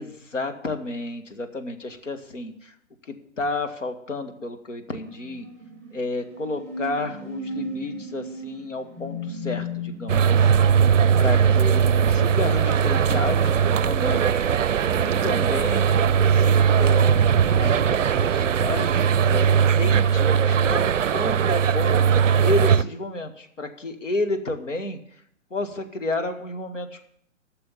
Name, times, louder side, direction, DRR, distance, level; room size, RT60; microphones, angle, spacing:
voice 1, 0.0-2.7 3.1-5.5 5.9-10.6 11.2-14.5 15.0-19.5 19.8-22.1 22.4-25.0 25.5-27.0, left 2 dB, 70° left, 6 dB, 1.8 m, -31 dB
sound 1, 5.0-14.2, left 1 dB, 5° left, 1.7 m, -37 dB
sound 2, 10.1-22.8, right 7 dB, 70° right, 0.5 m, -19 dB
13.5 x 6.8 x 7.2 m, 0.69 s
figure-of-eight pair, 130°, 39 cm